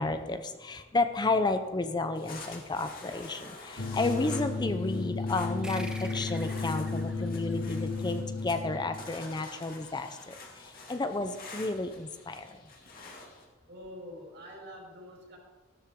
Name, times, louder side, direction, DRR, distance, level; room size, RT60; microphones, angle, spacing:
voice 1, 0.0-10.3 10.9-12.6, left 2 dB, 20° left, 9 dB, 0.6 m, -32 dB
sound 1, 2.1-13.5, left 3 dB, 50° left, 2.4 m, -48 dB
sound 2, 3.8-9.2, left 3 dB, 65° left, 1.1 m, -33 dB
sound 3, 5.6-8.7, equal, 5° right, 1.2 m, -47 dB
voice 2, 13.7-15.4, equal, 60° right, 0 dB, 4.4 m, -46 dB
14.5 x 12.5 x 3.7 m, 1.3 s
head